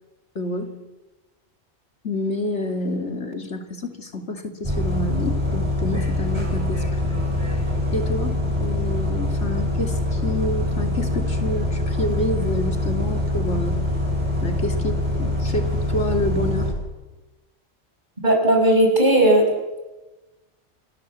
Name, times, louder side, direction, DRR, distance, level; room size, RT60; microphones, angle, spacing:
voice 1, 0.3-0.8 2.0-7.2 7.9-13.8 14.4-16.7, left 1 dB, 80° left, 5 dB, 2.9 m, -28 dB
Bus, 4.6-16.7, left 1 dB, 25° right, 8.2 m, -24 dB
voice 2, 18.2-19.4, right 1 dB, 40° right, 1 dB, 6.1 m, -16 dB
28.5 x 18.5 x 8.3 m, 1.1 s
omnidirectional pair, 1.2 m